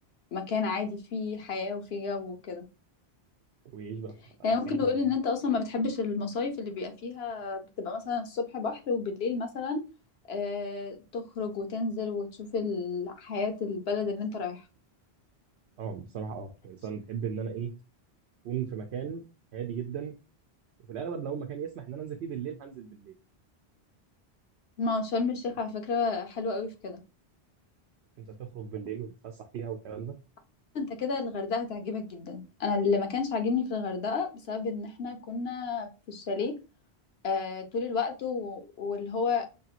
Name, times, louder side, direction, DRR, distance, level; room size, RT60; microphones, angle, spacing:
voice 1, 0.3-2.6 4.4-9.8 10.3-14.6 24.8-27.0 30.7-36.5 37.2-39.4, left 4 dB, 75° left, 5 dB, 1.1 m, -31 dB
voice 2, 3.6-4.1 4.7-5.0 15.8-17.7 18.4-19.2 19.5-20.1 20.9-23.2 28.2-30.1, right 7 dB, 90° right, 4 dB, 0.9 m, -36 dB
5.3 x 2.8 x 2.4 m, 0.31 s
omnidirectional pair, 1.1 m